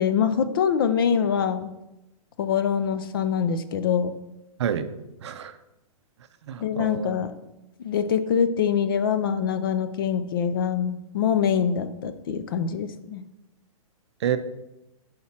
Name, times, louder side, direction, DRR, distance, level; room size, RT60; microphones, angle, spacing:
voice 1, 0.0-1.7 2.4-4.2 6.6-7.3 7.8-13.2, left 7 dB, 40° left, 11 dB, 0.4 m, -24 dB
voice 2, 5.2-5.5 6.5-7.1 14.2-14.4, right 9 dB, 50° right, 10 dB, 0.5 m, -28 dB
5.8 x 4.9 x 4.2 m, 0.92 s
hypercardioid pair, 165°, 18 cm